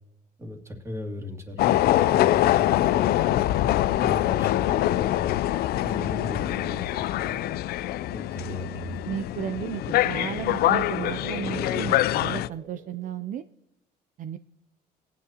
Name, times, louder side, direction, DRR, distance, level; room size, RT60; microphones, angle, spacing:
voice 1, 0.4-3.5 4.0-5.3 5.8-7.4 8.0-9.0, left 2 dB, 15° right, 3 dB, 2.0 m, -37 dB
sound 1, 1.6-12.5, left 14 dB, 65° left, 0.4 m, -24 dB
voice 2, 9.0-13.4 14.2-14.4, right 9 dB, 50° right, 12 dB, 0.4 m, -34 dB
sound 2, 9.1-13.4, right 7 dB, 90° right, 0.9 m, -42 dB
18.5 x 9.4 x 2.9 m, 0.91 s
cardioid pair, 110°, 17 cm